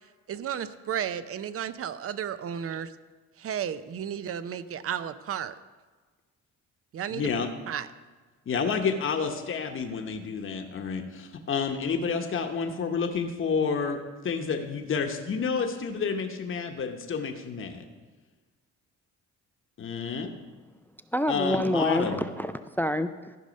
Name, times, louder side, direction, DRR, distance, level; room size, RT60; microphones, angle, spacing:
voice 1, 0.3-2.9 3.4-5.5 6.9-7.9, right 9 dB, 50° right, 14 dB, 0.6 m, -33 dB
voice 2, 7.1-7.5 8.5-14.0 14.2-17.8 19.8-20.3 21.3-22.2, left 5 dB, 45° left, 4 dB, 1.0 m, -29 dB
voice 3, 21.1-23.4, left 1 dB, 5° left, 11 dB, 0.3 m, -27 dB
14.0 x 5.4 x 5.2 m, 1.3 s
cardioid pair, 90°, 30 cm